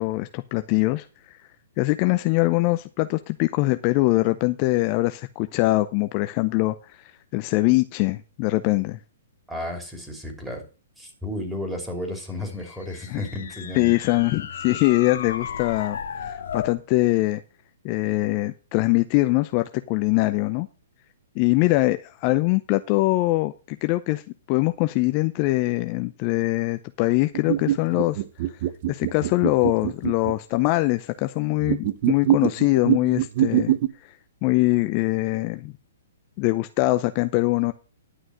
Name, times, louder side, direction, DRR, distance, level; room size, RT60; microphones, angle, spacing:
voice 1, 0.0-1.4 1.8-9.0 13.1-13.2 13.7-17.4 17.8-20.7 21.4-24.2 24.5-28.2 28.5-28.6 28.9-33.7 34.4-35.7 36.4-37.7, left 20 dB, 35° left, 0.6 m, -23 dB
voice 2, 9.5-10.6 11.0-14.0, left 1 dB, 5° right, 3.2 m, -33 dB
sound 1, 12.4-16.8, left 7 dB, 70° left, 2.0 m, -35 dB
sound 2, 27.3-30.3 31.6-33.9, right 13 dB, 50° right, 0.7 m, -24 dB
11.5 x 6.2 x 6.4 m
hypercardioid pair, 135°, 0 cm